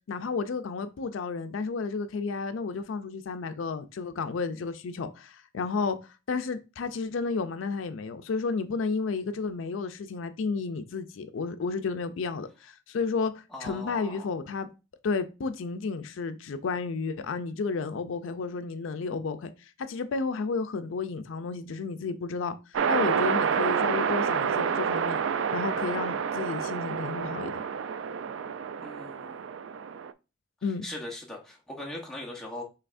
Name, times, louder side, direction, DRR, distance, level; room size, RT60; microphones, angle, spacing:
voice 1, 0.1-14.7 15.0-22.6 22.9-25.2 25.5-27.6 30.6-30.8, left 4 dB, 80° left, 0.4 m, -32 dB
voice 2, 13.5-14.3 28.8-29.5 30.6-32.6, left 1 dB, 5° left, 1.0 m, -40 dB
sound 1, 22.7-30.1, right 7 dB, 75° right, 0.4 m, -28 dB
5.6 x 3.3 x 2.5 m
head